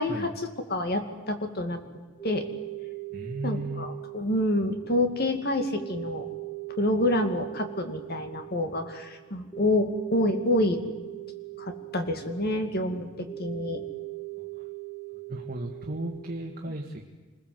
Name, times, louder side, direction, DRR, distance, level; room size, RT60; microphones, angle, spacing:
voice 1, 0.0-1.8 2.2-2.4 3.4-6.3 6.8-10.8 11.6-13.8, left 1 dB, 50° left, 6 dB, 2.4 m, -28 dB
sound 1, 2.2-16.4, right 16 dB, 10° left, 6.4 m, -40 dB
voice 2, 3.1-3.8 14.4-14.7 15.3-17.0, right 1 dB, 45° right, 1 dB, 1.9 m, -35 dB
27.0 x 21.0 x 8.0 m, 1.3 s
head